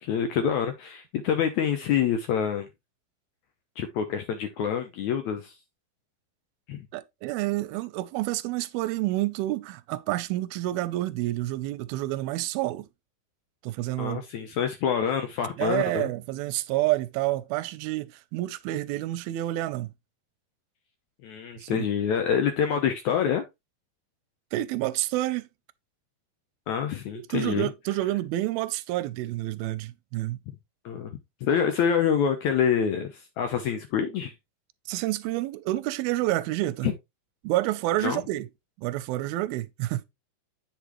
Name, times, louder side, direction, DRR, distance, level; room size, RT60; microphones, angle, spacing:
voice 1, 0.0-2.7 3.8-5.5 6.7-6.8 14.0-16.1 21.2-23.5 26.7-27.7 30.5-30.6 30.9-34.3 36.8-36.9 38.0-38.2, left 8 dB, 75° left, 1.8 m, -26 dB
voice 2, 6.9-12.9 13.6-14.2 15.6-19.9 21.6-21.8 24.5-25.5 27.1-30.4 34.9-36.9 37.4-38.5 38.8-40.0, right 16 dB, 90° right, 2.5 m, -29 dB
8.3 x 6.0 x 3.0 m
omnidirectional pair, 4.2 m